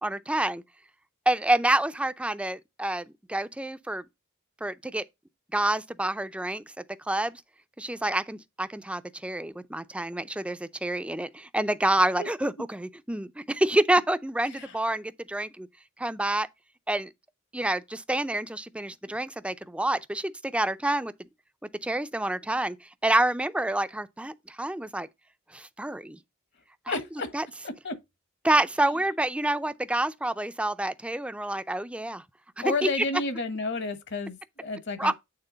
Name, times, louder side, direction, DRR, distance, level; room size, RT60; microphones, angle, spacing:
voice 1, 0.0-0.6 1.3-4.0 4.6-5.0 5.5-6.6 7.1-7.4 7.8-15.7 16.0-16.5 16.9-17.1 17.5-21.1 21.8-25.1 25.5-26.2 26.9-27.0 27.3-27.5 28.4-32.2 32.6-33.1 35.0-35.1, right 1 dB, 5° right, 0.4 m, -28 dB
voice 2, 26.9-27.3 27.6-28.0 32.6-35.1, left 3 dB, 60° left, 1.2 m, -31 dB
9.0 x 3.7 x 3.9 m
head